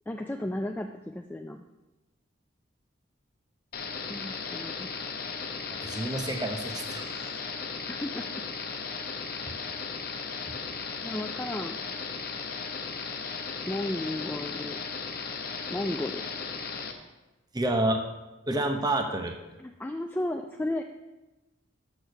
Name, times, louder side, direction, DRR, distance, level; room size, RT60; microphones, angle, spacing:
voice 1, 0.1-1.6 4.1-4.9 8.0-8.2 11.0-11.7 13.7-14.8 15.7-16.2 16.6-16.7 19.6-20.8, left 1 dB, 10° left, 4 dB, 0.3 m, -33 dB
sound 1, 3.7-16.9, left 5 dB, 50° left, 0.8 m, -36 dB
voice 2, 5.8-7.3 10.4-10.5 17.5-18.0 18.5-19.4, right 1 dB, 20° right, 5 dB, 0.8 m, -29 dB
6.7 x 6.3 x 6.4 m, 1.0 s
head